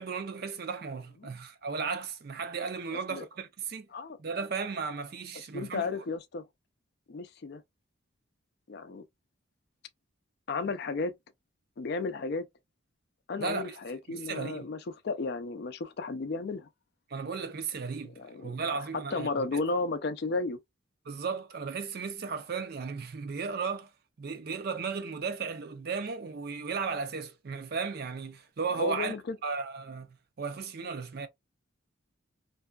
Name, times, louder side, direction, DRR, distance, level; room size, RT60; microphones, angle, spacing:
voice 1, 0.0-3.9 4.2-5.9 13.4-13.8 14.1-14.6 17.1-18.1 18.4-19.5 21.1-23.9 24.2-29.2 29.4-30.1 30.4-31.3, right 5 dB, 50° right, 0.5 m, -35 dB
voice 2, 5.5-6.4 7.1-7.6 8.7-9.0 10.5-11.1 11.8-12.5 13.3-16.7 18.0-18.9 19.1-20.6 28.7-29.4, left 3 dB, 55° left, 0.4 m, -33 dB
2.6 x 2.3 x 2.2 m
head